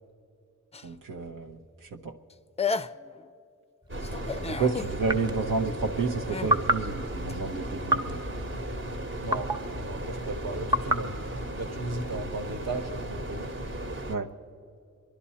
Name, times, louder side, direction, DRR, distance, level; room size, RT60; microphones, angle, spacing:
sound 1, 0.7-1.4 2.3-2.4 2.6-3.3 4.0-4.9 6.3-6.6 7.3-7.4, left 5 dB, 20° left, 0.4 m, -33 dB
voice 1, 0.8-2.1 4.5-8.2 14.1-14.3, right 4 dB, 85° right, 0 dB, 0.9 m, -30 dB
sound 2, 3.8-3.9 5.0-5.5 6.5-6.9 7.9-8.2 9.3-9.7 10.7-11.1, equal, 15° right, 0.8 m, -27 dB
sound 3, 3.9-14.2, right 1 dB, 40° right, 1.1 m, -36 dB
voice 2, 9.0-13.4, right 2 dB, 55° right, 7 dB, 1.2 m, -37 dB
26.0 x 11.5 x 4.3 m, 2.6 s
wide cardioid pair, 80°, 32 cm